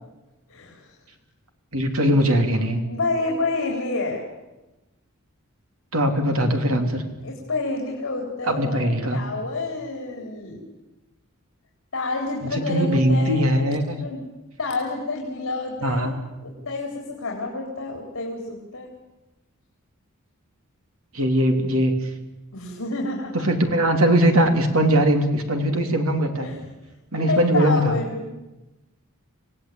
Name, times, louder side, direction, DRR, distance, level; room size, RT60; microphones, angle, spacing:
voice 1, 0.5-0.9 2.8-4.2 7.2-10.6 11.9-14.2 14.6-16.1 16.4-18.9 22.5-23.4 26.4-26.7 27.1-28.3, left 3 dB, 65° left, 0 dB, 4.0 m, -29 dB
voice 2, 1.7-2.8 5.9-7.0 8.5-9.2 12.4-14.0 15.8-16.2 21.1-22.0 23.3-26.5 27.1-27.9, equal, 70° right, 5 dB, 3.1 m, -20 dB
26.5 x 17.5 x 8.8 m, 1.0 s
head